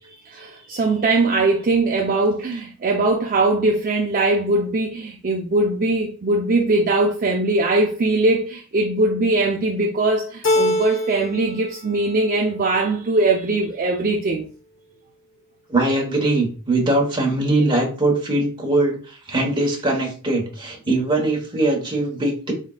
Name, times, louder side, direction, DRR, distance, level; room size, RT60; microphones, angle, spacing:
voice 1, 0.1-14.5, right 2 dB, 40° right, 0.5 m, -21 dB
Keyboard (musical), 10.4-11.5 11.9-12.6, left 1 dB, 60° left, 1.0 m, -23 dB
voice 2, 15.7-22.5, right 2 dB, 20° right, 1.3 m, -21 dB
4.3 x 3.6 x 2.4 m
head